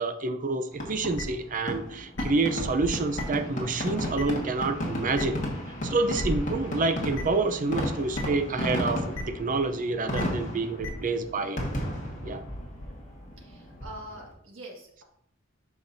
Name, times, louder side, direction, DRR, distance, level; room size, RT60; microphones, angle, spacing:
voice 1, 0.0-5.4 5.8-11.6 12.2-12.4, right 3 dB, 40° right, 8 dB, 0.6 m, -28 dB
Fireworks, 0.7-14.3, equal, 40° left, 1.6 m, -34 dB
sound 1, 1.2-1.3 2.2-2.3 3.2-3.3 4.2-4.3 5.1-5.2 6.1-6.2 7.1-7.2 8.1-8.2 9.1-9.2 10.1-10.2 10.8-10.9, left 2 dB, 85° left, 1.1 m, -34 dB
voice 2, 13.4-15.0, right 1 dB, 70° right, 0 dB, 1.9 m, -44 dB
8.8 x 5.8 x 2.7 m, 0.69 s
head